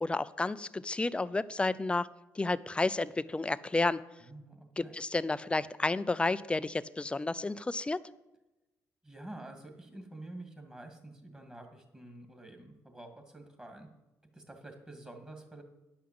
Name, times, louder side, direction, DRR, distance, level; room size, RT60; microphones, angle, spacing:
voice 1, 0.0-2.1 2.3-4.0 4.8-8.0, left 3 dB, 15° left, 16 dB, 0.5 m, -31 dB
voice 2, 4.2-5.0 9.0-13.9 14.3-15.6, right 2 dB, 10° right, 5 dB, 2.3 m, -48 dB
9.9 x 5.7 x 7.7 m, 1.0 s
supercardioid pair, 75°, 7 cm